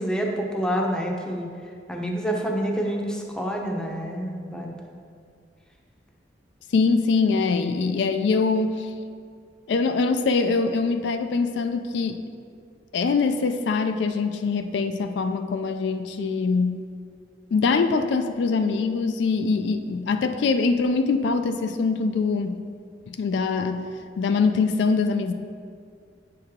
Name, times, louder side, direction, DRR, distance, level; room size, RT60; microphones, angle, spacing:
voice 1, 0.0-1.5 1.9-4.7, equal, 5° left, 0 dB, 0.6 m, -27 dB
voice 2, 6.7-8.9 9.7-12.2 12.9-16.8 17.5-22.6 23.2-23.8 24.2-25.3, left 4 dB, 65° left, 8 dB, 0.3 m, -23 dB
8.7 x 4.7 x 3.6 m, 2.2 s
head